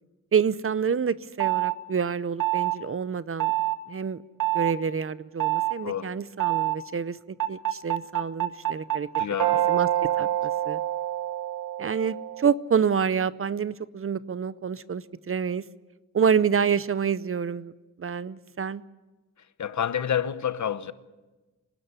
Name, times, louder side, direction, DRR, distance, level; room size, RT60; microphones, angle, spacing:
voice 1, 0.3-3.5 3.9-4.2 4.5-9.1 9.7-10.8 11.8-15.6 16.1-17.7 18.0-18.8, right 6 dB, 45° right, 0.6 m, -27 dB
sound 1, 1.4-1.7 2.4-2.8 3.4-3.8 4.4-4.7 5.4-5.7 6.4-6.8 7.4-12.5, right 14 dB, 75° right, 1.3 m, -26 dB
voice 2, 5.8-6.1 9.2-9.8 10.2-10.3 19.6-20.9, left 9 dB, 65° left, 1.0 m, -29 dB
26.0 x 12.5 x 9.7 m
wide cardioid pair, 95°, 31 cm